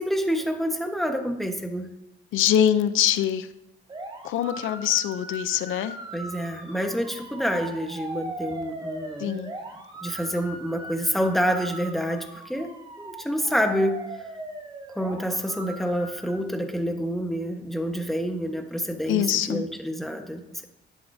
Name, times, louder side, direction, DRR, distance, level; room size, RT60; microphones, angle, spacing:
voice 1, 0.0-1.9 6.1-9.4 10.0-12.7 13.0-14.0 14.9-20.7, equal, ahead, 4 dB, 1.3 m, -28 dB
voice 2, 2.3-3.5 4.2-6.0 9.2-9.5 19.1-19.6, left 10 dB, 85° left, 12 dB, 0.7 m, -23 dB
sound 1, 3.9-16.4, right 2 dB, 25° right, 2.0 m, -39 dB
11.0 x 10.5 x 2.8 m, 0.86 s
cardioid pair, 90°, 20 cm